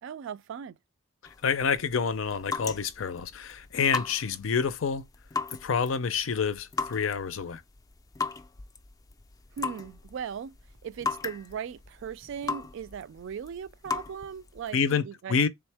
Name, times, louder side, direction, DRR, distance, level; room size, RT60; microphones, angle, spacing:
voice 1, 0.0-0.8 9.6-10.6 10.8-15.5, right 7 dB, 70° right, 0.3 m, -38 dB
sound 1, 1.2-14.8, left 4 dB, 20° left, 0.3 m, -38 dB
voice 2, 1.4-5.1 5.6-7.6 14.7-15.5, left 6 dB, 80° left, 0.5 m, -28 dB
3.5 x 3.5 x 3.3 m
head